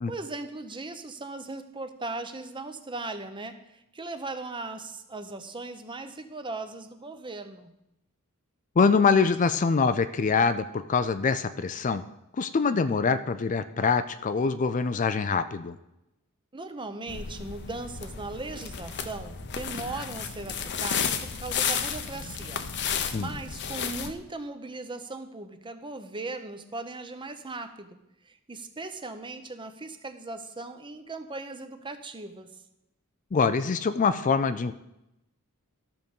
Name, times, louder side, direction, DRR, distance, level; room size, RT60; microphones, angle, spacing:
voice 1, 0.1-7.7 16.5-22.6 23.1-32.6, right 3 dB, 20° right, 8 dB, 0.8 m, -38 dB
voice 2, 8.8-12.0 12.4-15.8 23.1-23.3 33.3-34.7, left 5 dB, 35° left, 11 dB, 0.4 m, -24 dB
sound 1, 17.1-24.1, left 7 dB, 55° left, 0.8 m, -32 dB
13.0 x 6.5 x 5.4 m, 0.88 s
head